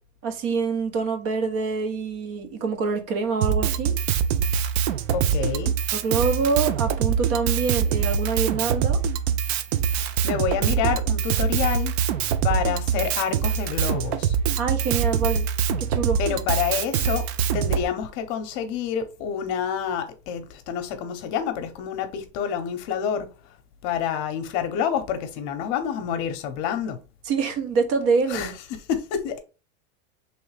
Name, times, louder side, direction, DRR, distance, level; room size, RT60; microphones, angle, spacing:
voice 1, 0.2-3.9 5.9-9.0 12.5-12.6 14.6-15.5 15.8-16.2 27.2-28.5, right 5 dB, 50° right, 0.8 m, -25 dB
Drum kit, 3.4-17.8, right 8 dB, 70° right, 0.6 m, -24 dB
voice 2, 5.1-5.7 10.2-11.9 12.4-14.3 16.2-17.2 17.5-23.3 23.8-27.0 28.3-28.5 28.9-29.4, left 8 dB, 50° left, 0.8 m, -28 dB
3.4 x 3.1 x 3.2 m
supercardioid pair, 145°, 33 cm